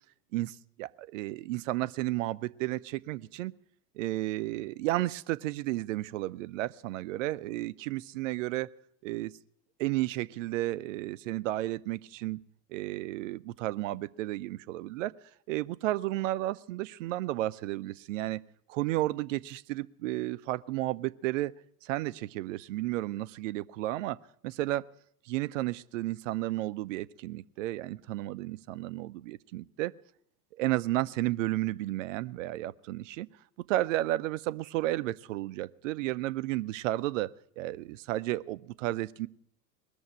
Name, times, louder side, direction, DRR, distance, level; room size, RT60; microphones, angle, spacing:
voice 1, 0.3-3.5 4.0-8.7 9.0-9.3 9.8-12.4 12.7-15.1 15.5-18.4 18.7-21.5 21.8-24.2 24.4-24.9 25.2-29.9 30.6-33.3 33.7-39.3, right 16 dB, 50° right, 17 dB, 0.7 m, -32 dB
21.0 x 7.1 x 9.8 m, 0.68 s
figure-of-eight pair, 85°, 49 cm